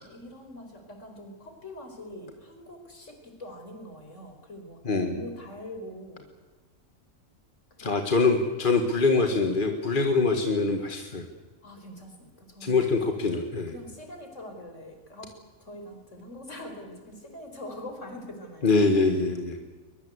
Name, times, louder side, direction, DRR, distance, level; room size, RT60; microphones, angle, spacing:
voice 1, 0.1-6.3 7.8-8.0 11.6-12.9 13.7-15.3 15.6-18.9, left 1 dB, 60° left, 4 dB, 5.1 m, -43 dB
voice 2, 4.9-5.2 7.8-11.3 12.6-13.7 18.6-19.6, left 3 dB, 40° left, 4 dB, 1.9 m, -24 dB
22.5 x 22.0 x 8.2 m, 1.3 s
omnidirectional pair, 1.4 m